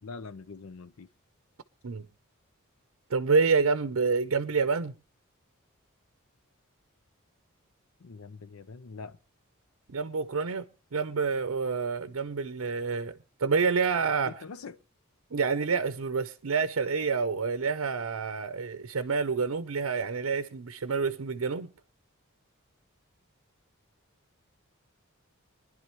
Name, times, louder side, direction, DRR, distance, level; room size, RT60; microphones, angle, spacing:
voice 1, 0.0-1.1 8.0-9.2 14.2-14.7, left 4 dB, 85° left, 0.6 m, -43 dB
voice 2, 3.1-4.9 9.9-13.1 13.4-14.4 15.3-21.7, right 5 dB, 85° right, 0.6 m, -28 dB
24.0 x 11.0 x 3.0 m
head